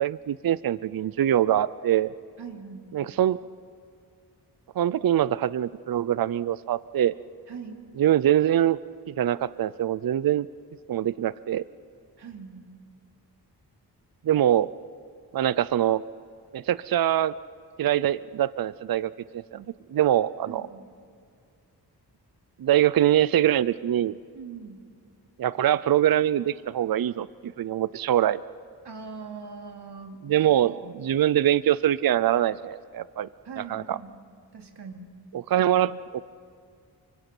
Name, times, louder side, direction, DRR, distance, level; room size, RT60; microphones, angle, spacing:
voice 1, 0.0-2.1 2.9-3.4 4.8-7.1 8.0-8.8 9.1-10.5 10.9-11.6 14.2-14.7 15.3-16.0 16.5-17.3 17.8-20.6 22.6-24.1 25.4-28.4 30.2-33.3 33.7-34.0 35.5-36.2, right 11 dB, 60° right, 17 dB, 0.5 m, -23 dB
voice 2, 2.4-2.8 7.5-7.9 12.2-12.7 20.5-20.9 24.3-24.8 28.8-30.3 33.4-34.2 34.5-35.1, right 5 dB, 85° right, 3 dB, 2.8 m, -41 dB
28.5 x 25.5 x 6.1 m, 2.3 s
wide cardioid pair, 145°, 40 cm